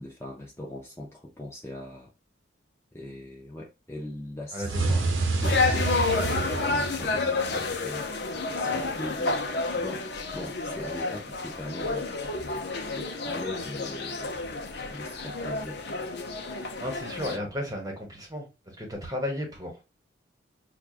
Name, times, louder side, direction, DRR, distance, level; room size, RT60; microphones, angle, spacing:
voice 1, 0.0-2.1 2.9-4.8 5.4-9.4 9.7-10.1 10.3-12.1 12.9-14.3 14.9-15.8, left 1 dB, 15° left, 0.5 m, -40 dB
voice 2, 4.5-5.0 16.8-18.5 18.8-19.8, left 1 dB, 20° right, 1.1 m, -34 dB
sound 1, 4.6-7.8, right 3 dB, 85° right, 0.9 m, -28 dB
sound 2, 5.4-17.4, left 3 dB, 55° left, 0.6 m, -30 dB
6.0 x 2.3 x 2.4 m
head